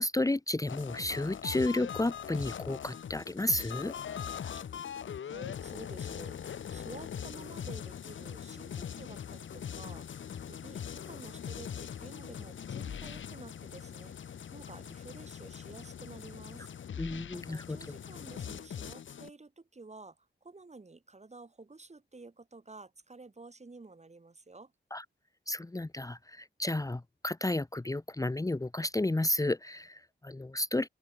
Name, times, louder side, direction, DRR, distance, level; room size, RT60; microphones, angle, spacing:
voice 1, 0.0-3.9 17.0-17.8 24.9-25.0 25.5-30.9, left 1 dB, 15° left, 1.1 m, -32 dB
sound 1, 0.7-19.3, left 8 dB, 80° left, 0.9 m, -41 dB
voice 2, 5.2-24.7, right 3 dB, 35° right, 5.2 m, -51 dB
open air
wide cardioid pair, 80°, 20 cm